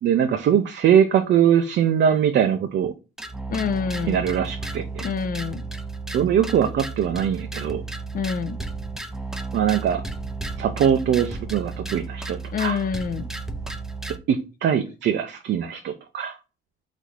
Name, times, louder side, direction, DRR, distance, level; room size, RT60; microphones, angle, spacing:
voice 1, 0.0-2.9 4.1-5.0 6.1-7.8 9.5-10.0 10.6-12.8 14.3-16.4, right 9 dB, 65° right, 0.6 m, -22 dB
sound 1, 3.2-14.2, right 3 dB, ahead, 0.5 m, -33 dB
voice 2, 3.5-4.2 5.0-5.6 8.1-8.6 12.5-13.3, left 6 dB, 45° left, 0.6 m, -27 dB
4.1 x 2.7 x 4.6 m
cardioid pair, 90°, 20 cm